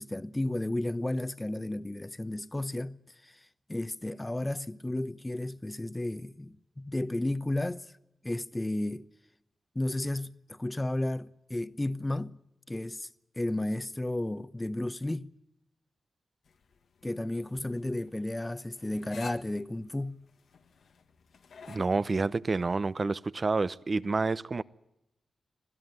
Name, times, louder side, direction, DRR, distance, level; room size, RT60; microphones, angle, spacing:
voice 1, 0.0-3.4 3.7-7.9 8.2-9.0 9.7-12.4 12.7-13.1 13.4-15.3 17.0-20.2, left 1 dB, 15° left, 1.0 m, -33 dB
sound 1, 16.4-21.9, left 6 dB, 85° left, 1.8 m, -51 dB
voice 2, 21.7-24.6, right 3 dB, 45° right, 0.8 m, -29 dB
26.5 x 16.5 x 9.5 m
cardioid pair, 75°, 0 cm